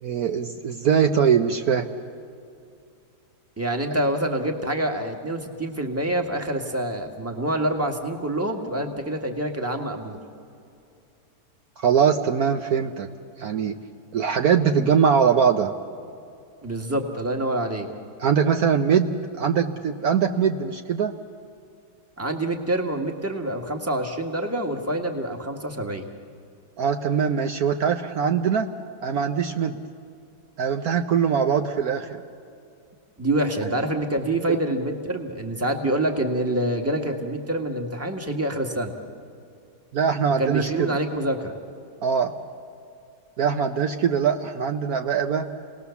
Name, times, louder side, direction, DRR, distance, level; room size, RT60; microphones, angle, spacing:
voice 1, 0.0-1.9 11.8-13.1 13.4-13.7 14.1-15.7 18.2-21.1 26.8-28.7 29.0-29.8 30.6-32.2 39.9-41.0 42.0-42.3 43.4-45.5, right 7 dB, 65° right, 6 dB, 1.2 m, -22 dB
voice 2, 3.6-10.2 16.6-17.9 22.2-26.1 33.2-38.9 40.4-41.5, right 1 dB, 10° right, 4 dB, 1.6 m, -26 dB
28.5 x 19.0 x 7.1 m, 2.5 s
omnidirectional pair, 1.8 m